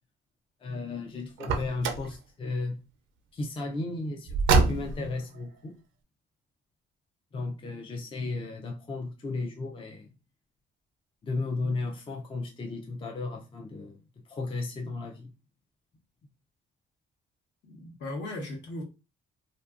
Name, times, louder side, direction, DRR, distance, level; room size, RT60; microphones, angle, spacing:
voice 1, 0.6-2.8 3.3-5.8 7.3-10.1 11.2-14.0 14.3-15.3, left 3 dB, 25° left, 0.4 m, -34 dB
Car, 1.4-2.1 4.3-5.1, right 3 dB, 80° right, 0.5 m, -25 dB
voice 2, 17.6-18.8, left 1 dB, 65° left, 1.0 m, -37 dB
2.5 x 2.5 x 2.4 m
cardioid pair, 90°, 20 cm